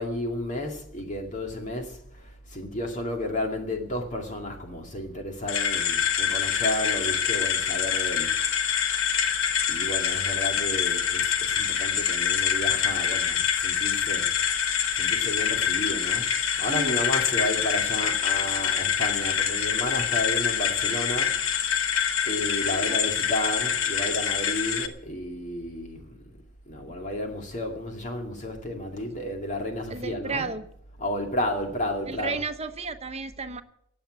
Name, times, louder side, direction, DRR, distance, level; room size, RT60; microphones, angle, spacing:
voice 1, 0.0-8.3 9.7-14.3 15.0-21.3 22.3-26.2 26.7-30.5 31.0-32.4, left 1 dB, 40° left, 2.3 m, -32 dB
sound 1, 5.5-24.9, left 8 dB, 90° left, 1.2 m, -25 dB
voice 2, 16.6-17.1 22.7-23.0 29.9-30.7 32.1-33.6, right 4 dB, 30° right, 1.0 m, -33 dB
18.0 x 7.3 x 8.7 m
head